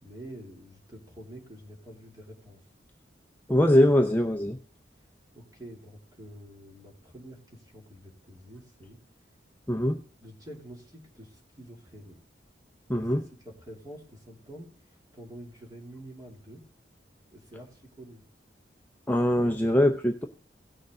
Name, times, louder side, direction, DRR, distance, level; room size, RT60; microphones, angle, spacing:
voice 1, 0.0-2.7 5.3-9.0 10.2-12.2 12.9-13.1 13.4-16.6 17.3-18.2, equal, 20° right, -2 dB, 2.8 m, -47 dB
voice 2, 3.5-4.6 9.7-10.0 12.9-13.2 19.1-20.2, left 1 dB, 10° left, 3 dB, 0.6 m, -22 dB
17.0 x 6.5 x 3.8 m, 0.42 s
head